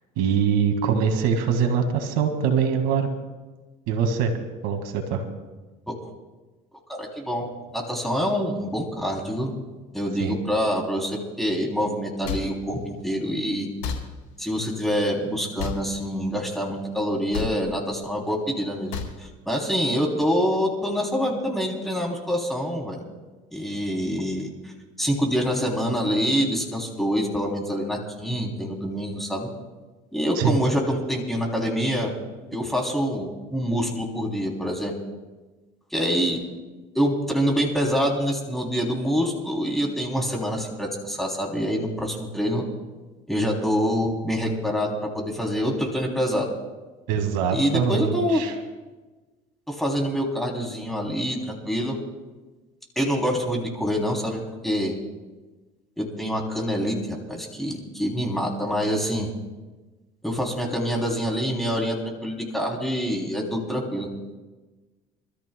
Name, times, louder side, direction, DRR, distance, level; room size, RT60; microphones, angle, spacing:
voice 1, 0.2-3.1 3.9-4.3 4.6-5.3 10.2-10.4 30.4-30.6 47.1-48.5, right 6 dB, 80° right, 5 dB, 1.9 m, -23 dB
voice 2, 6.9-9.5 9.9-13.7 14.4-18.9 19.2-23.0 23.5-24.5 25.0-29.5 30.1-32.1 32.5-34.9 35.9-36.4 36.9-42.7 43.3-46.5 47.5-48.4 49.7-52.0 52.9-54.9 56.0-59.3 60.2-64.1, equal, ahead, 0 dB, 3.0 m, -26 dB
sound 1, 12.2-12.4 13.8-14.0 15.6-15.8 17.3-17.5 18.9-19.1, left 6 dB, 90° left, 3.4 m, -29 dB
27.5 x 13.5 x 2.2 m, 1.2 s
cardioid pair, 105°, 16 cm